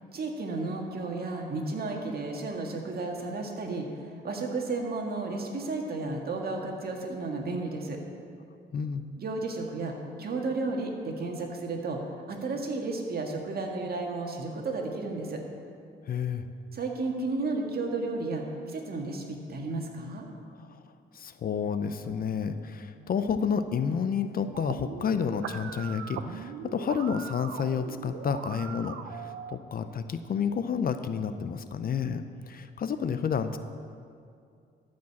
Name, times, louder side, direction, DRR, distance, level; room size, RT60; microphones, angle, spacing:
voice 1, 0.1-8.0 9.2-12.0 12.3-15.4 16.7-20.3, right 3 dB, 50° right, 1 dB, 1.8 m, -33 dB
voice 2, 8.7-9.0 16.0-16.5 20.6-20.8 21.1-33.6, left 6 dB, 50° left, 10 dB, 0.6 m, -30 dB
sound 1, 24.5-29.5, right 8 dB, 75° right, 0.6 m, -40 dB
13.5 x 5.2 x 7.1 m, 2.3 s
cardioid pair, 90°, 20 cm